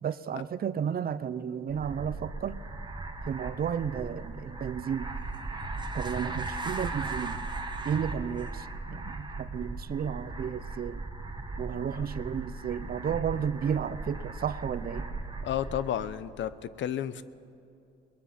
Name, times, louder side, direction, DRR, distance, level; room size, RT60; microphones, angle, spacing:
voice 1, 0.0-2.6 3.2-5.1 5.9-7.4 7.8-11.0 11.6-15.1, right 8 dB, 50° right, 0.7 m, -33 dB
sound 1, 1.7-16.2, right 3 dB, 20° right, 1.6 m, -38 dB
voice 2, 15.4-17.2, left 10 dB, 70° left, 0.7 m, -32 dB
22.5 x 20.0 x 5.8 m
cardioid pair, 90°, 20 cm